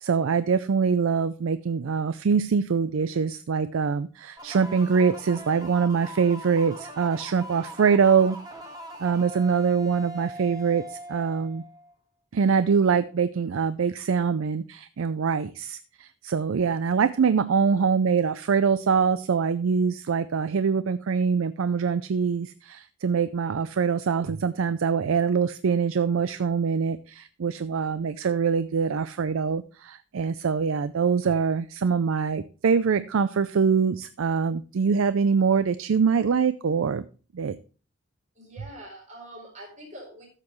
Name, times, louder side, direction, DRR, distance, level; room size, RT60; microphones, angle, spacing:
voice 1, 0.0-8.4 9.0-11.6 12.3-37.1 37.3-37.6, right 6 dB, 75° right, 14 dB, 0.4 m, -24 dB
sound 1, 4.4-11.9, right 1 dB, 20° right, 1.6 m, -41 dB
voice 2, 38.4-40.3, right 1 dB, 35° right, 0 dB, 4.2 m, -44 dB
13.5 x 7.5 x 3.1 m, 0.36 s
head